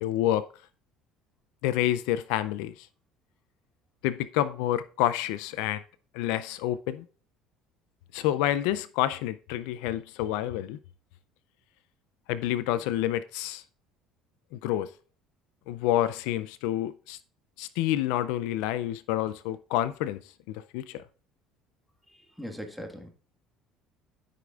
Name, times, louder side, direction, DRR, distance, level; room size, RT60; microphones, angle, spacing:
voice 1, 0.0-0.5 1.6-2.9 4.0-5.8 6.1-7.0 8.1-10.8 12.3-13.6 14.5-14.9 15.7-17.2 17.6-20.2 20.5-21.0, left 13 dB, 80° left, 0.4 m, -28 dB
voice 2, 22.1-23.1, equal, ahead, 1.6 m, -40 dB
13.0 x 5.0 x 2.4 m
supercardioid pair, 85°, 0 cm